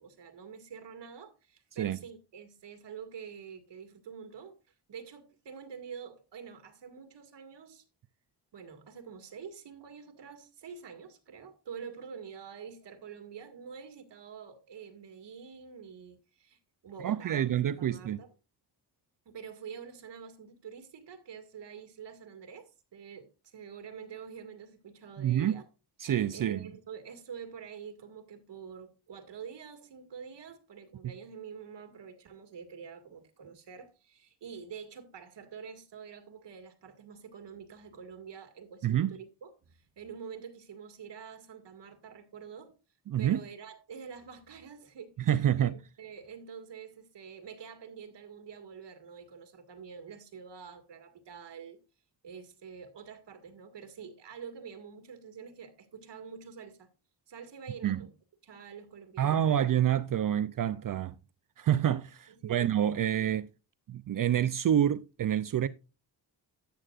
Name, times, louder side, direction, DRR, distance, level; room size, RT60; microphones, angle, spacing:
voice 1, 0.0-4.6 4.9-7.8 8.5-17.5 17.7-18.3 19.3-25.7 26.3-42.8 43.2-51.8 52.2-56.9 57.3-58.1 58.4-59.6 62.3-62.6, right 6 dB, 70° right, 2.0 m, -47 dB
voice 2, 17.0-18.2 25.2-25.6 26.0-26.7 31.0-31.1 38.8-39.2 43.1-43.4 45.2-45.8 57.8-58.0 59.2-61.1 61.6-63.5 63.9-65.7, right 10 dB, 50° right, 0.5 m, -27 dB
13.0 x 8.9 x 2.4 m
wide cardioid pair, 130°, 43 cm